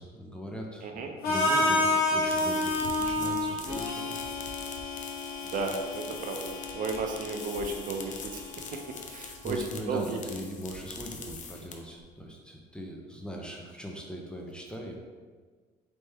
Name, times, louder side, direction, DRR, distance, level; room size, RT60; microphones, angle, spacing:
voice 1, 0.0-4.2 4.8-5.0 9.4-14.9, equal, 5° left, 0 dB, 0.6 m, -40 dB
Harmonica, 1.2-9.1, left 2 dB, 65° left, 1.1 m, -30 dB
sound 1, 2.0-12.0, left 5 dB, 45° left, 0.6 m, -43 dB
voice 2, 5.4-8.4 9.1-9.6 9.9-10.2, right 4 dB, 55° right, 3 dB, 0.6 m, -34 dB
4.1 x 3.4 x 3.4 m, 1.5 s
cardioid pair, 110°, 17 cm